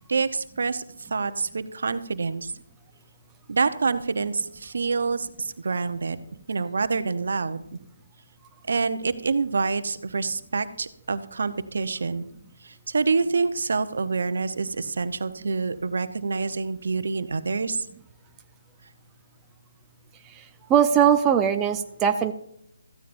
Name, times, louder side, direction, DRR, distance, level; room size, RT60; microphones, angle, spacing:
voice 1, 0.1-0.8 1.1-2.5 3.5-6.2 6.5-7.6 8.7-12.3 12.6-17.8, right 4 dB, 65° right, 11 dB, 1.0 m, -27 dB
voice 2, 20.7-22.3, right 8 dB, 15° right, 6 dB, 0.6 m, -20 dB
16.0 x 14.5 x 2.7 m, 0.73 s
figure-of-eight pair, 145°, 0 cm